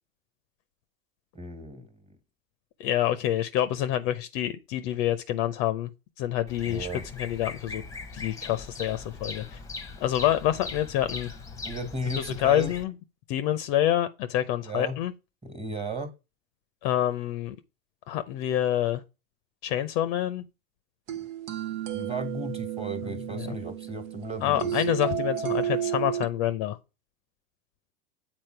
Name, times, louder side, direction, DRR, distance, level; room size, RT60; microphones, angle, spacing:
voice 1, 1.3-1.9 6.6-7.0 11.6-12.7 14.6-15.0 15.4-16.1 21.1-21.3 21.9-24.9, right 1 dB, 15° right, 1.5 m, -35 dB
voice 2, 2.8-5.9 6.2-6.9 7.2-7.8 8.1-9.6 10.0-11.3 12.2-12.9 13.3-15.1 16.8-17.6 18.1-19.0 19.6-20.4 23.0-23.5 24.4-26.8, left 12 dB, 45° left, 0.6 m, -27 dB
Bird vocalization bird call bird song, 6.5-12.8, left 4 dB, 5° left, 0.9 m, -40 dB
sound 1, 21.1-26.3, right 9 dB, 60° right, 0.8 m, -32 dB
7.9 x 4.3 x 4.4 m
hypercardioid pair, 95°, 44 cm